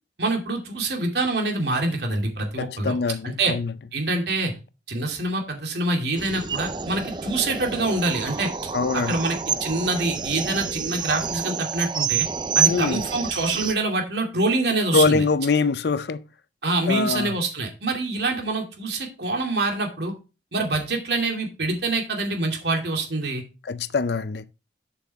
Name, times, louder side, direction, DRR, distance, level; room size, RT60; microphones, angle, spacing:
voice 1, 0.2-3.0 3.2-3.5 3.9-4.5 4.9-12.3 12.5-15.2 16.6-20.1 20.5-23.4, right 2 dB, 65° right, 2.6 m, -25 dB
voice 2, 2.6-3.7 8.7-9.2 12.7-13.0 14.9-16.2 16.9-17.3 23.7-24.4, left 4 dB, 65° left, 0.5 m, -23 dB
sound 1, 6.2-13.7, right 6 dB, 25° right, 0.5 m, -28 dB
7.7 x 7.5 x 3.5 m
head